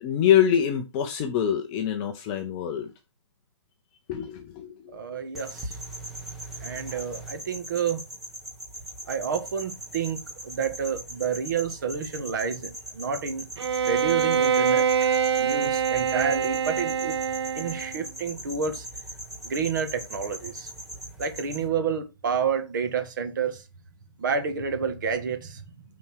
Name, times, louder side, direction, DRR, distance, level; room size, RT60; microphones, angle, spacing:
voice 1, 0.0-2.9 4.1-4.7 6.9-7.0, left 9 dB, 15° left, 0.7 m, -25 dB
voice 2, 4.9-5.8 6.6-8.0 9.1-13.5 13.8-17.2 17.6-18.9 19.4-20.7 21.2-23.6 24.2-25.6, right 6 dB, 40° right, 1.9 m, -29 dB
sound 1, 5.4-21.7, right 1 dB, ahead, 1.2 m, -40 dB
Bowed string instrument, 13.6-18.0, right 7 dB, 60° right, 0.7 m, -24 dB
9.4 x 4.4 x 6.2 m
hypercardioid pair, 175°, 16 cm